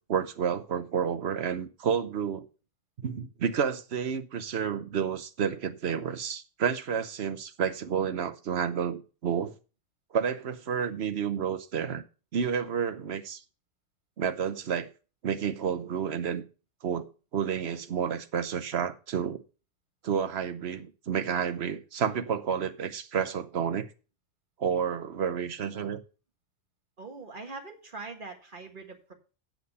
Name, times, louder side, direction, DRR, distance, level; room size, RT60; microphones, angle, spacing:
voice 1, 0.1-2.5 3.0-9.5 10.1-12.0 12.3-13.4 14.2-14.9 15.2-16.4 16.8-19.4 20.0-23.9 24.6-26.0, right 7 dB, 65° right, 1.1 m, -30 dB
voice 2, 27.0-29.1, right 3 dB, 45° right, 1.8 m, -42 dB
8.2 x 7.8 x 5.5 m
omnidirectional pair, 1.2 m